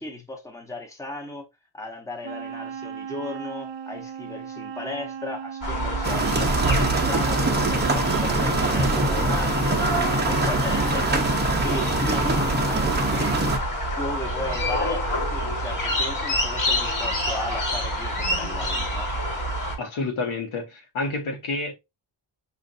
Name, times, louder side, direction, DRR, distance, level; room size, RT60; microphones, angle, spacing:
voice 1, 0.0-1.5 1.7-9.8 10.3-11.2 11.6-13.5 14.0-19.1, left 2 dB, 5° left, 0.9 m, -36 dB
Wind instrument woodwind instrument, 2.2-8.4, right 7 dB, 60° right, 0.5 m, -37 dB
sound 1, 5.6-19.8, equal, 40° left, 1.4 m, -27 dB
sound 2, 6.0-13.6, right 2 dB, 20° right, 0.7 m, -24 dB
voice 2, 19.8-21.7, left 3 dB, 80° left, 1.2 m, -29 dB
5.7 x 2.5 x 2.5 m
wide cardioid pair, 140°, 49 cm